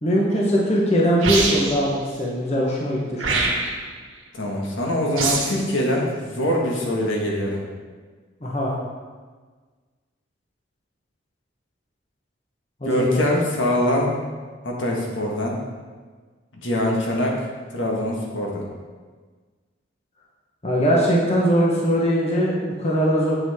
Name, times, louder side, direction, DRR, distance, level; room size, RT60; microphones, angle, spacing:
voice 1, 0.0-3.5 8.4-8.7 12.8-13.3 20.6-23.4, equal, 35° left, -4 dB, 1.1 m, -21 dB
sound 1, 1.2-1.9 3.2-3.9 5.2-5.6, right 3 dB, 85° right, 1.5 m, -23 dB
voice 2, 4.3-7.6 12.8-14.2 14.6-15.6 16.6-18.7, left 1 dB, 70° left, -2 dB, 1.5 m, -23 dB
7.9 x 7.1 x 3.6 m, 1.4 s
head